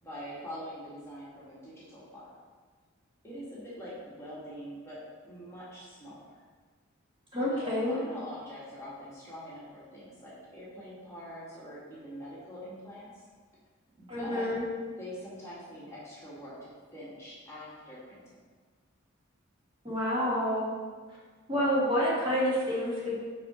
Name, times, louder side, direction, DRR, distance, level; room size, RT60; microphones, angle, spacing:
voice 1, 0.0-2.3 3.2-6.3 7.4-13.3 14.0-18.2, equal, 15° left, -8 dB, 1.7 m, -44 dB
voice 2, 7.3-8.0 14.1-14.6 19.8-20.7 21.5-23.2, equal, 25° right, -7 dB, 2.0 m, -28 dB
5.7 x 4.9 x 5.6 m, 1.5 s
head